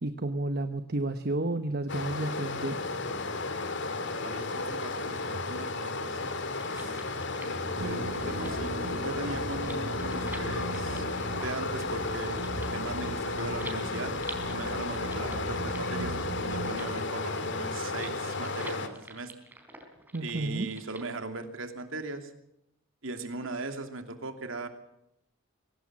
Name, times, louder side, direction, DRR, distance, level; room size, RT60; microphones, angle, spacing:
voice 1, 0.0-2.8 20.1-20.7, right 2 dB, 45° right, 9 dB, 1.1 m, -31 dB
Stream, 1.9-18.9, left 3 dB, 55° left, 2.2 m, -33 dB
voice 2, 4.2-6.4 6.7-7.0 7.4-8.0 8.2-11.0 11.4-14.2 14.5-19.3 20.2-22.3 23.0-24.7, right 3 dB, 65° right, 7 dB, 2.8 m, -39 dB
sound 1, 6.3-21.1, right 2 dB, 10° right, 4.2 m, -49 dB
sound 2, 7.8-16.7, right 1 dB, 80° right, 6.1 m, -38 dB
24.0 x 18.5 x 7.5 m, 0.80 s
head